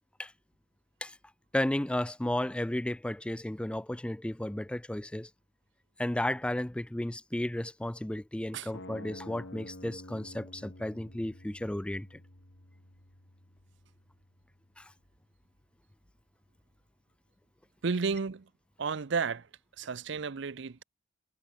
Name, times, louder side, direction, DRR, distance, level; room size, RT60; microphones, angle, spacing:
voice 1, 1.5-5.3 6.0-12.2 14.8-14.9, left 1 dB, 5° left, 0.3 m, -33 dB
sound 1, 8.7-14.7, left 1 dB, 70° left, 3.4 m, -50 dB
voice 2, 17.8-18.5 18.8-19.5 19.8-20.8, right 5 dB, 65° right, 0.6 m, -32 dB
head